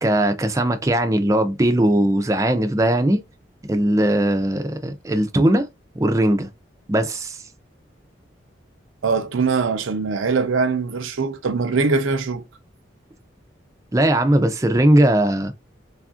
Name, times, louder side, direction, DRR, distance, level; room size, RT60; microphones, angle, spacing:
voice 1, 0.0-3.2 3.7-5.7 6.0-6.5 6.9-7.4 13.9-15.5, right 1 dB, 15° right, 0.4 m, -19 dB
voice 2, 9.0-12.4, right 4 dB, 90° right, 0.6 m, -22 dB
3.4 x 2.4 x 2.3 m
head